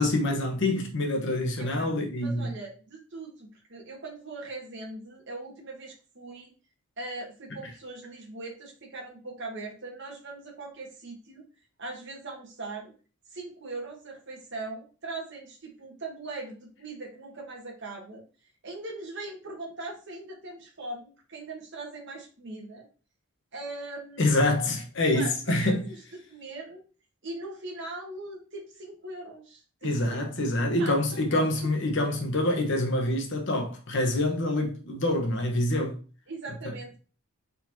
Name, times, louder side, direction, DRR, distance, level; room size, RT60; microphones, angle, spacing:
voice 1, 0.0-2.5 24.2-25.8 29.8-36.0, left 1 dB, 55° left, 1.1 m, -26 dB
voice 2, 1.6-6.5 7.0-11.4 11.8-12.9 13.3-18.2 18.6-22.8 23.5-24.7 25.1-26.0 26.3-26.8 27.2-30.2 30.8-31.4 36.3-37.0, right 2 dB, 55° right, 1.2 m, -40 dB
4.4 x 4.2 x 2.7 m
head